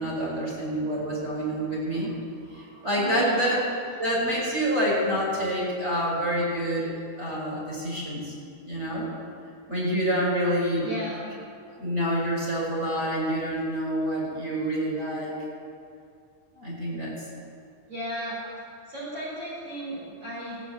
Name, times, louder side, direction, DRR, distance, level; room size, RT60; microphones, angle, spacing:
voice 1, 0.0-3.6 4.0-6.9 7.2-8.3 8.6-9.1 9.7-10.9 11.8-15.3 16.5-17.1, equal, 20° right, -6 dB, 4.9 m, -27 dB
voice 2, 2.9-3.6 10.8-11.2 17.9-20.6, right 1 dB, 45° right, -8 dB, 5.3 m, -35 dB
15.5 x 8.0 x 8.2 m, 2.3 s
omnidirectional pair, 3.6 m